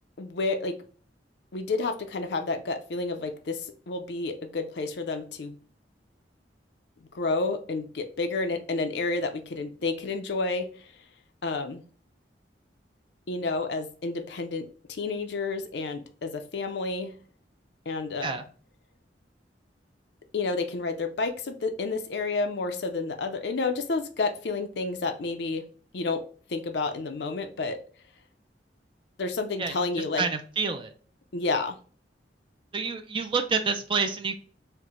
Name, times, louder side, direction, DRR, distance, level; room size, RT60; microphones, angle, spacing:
voice 1, 0.2-0.8 1.5-5.5 7.1-10.9 11.4-11.8 13.3-17.1 17.9-18.4 20.3-25.6 25.9-26.2 26.5-27.8 29.2-30.3 31.3-31.8, left 3 dB, 70° left, 7 dB, 0.5 m, -30 dB
voice 2, 30.2-30.9 32.7-34.4, right 5 dB, 30° right, 6 dB, 0.4 m, -28 dB
4.4 x 2.1 x 3.7 m, 0.42 s
head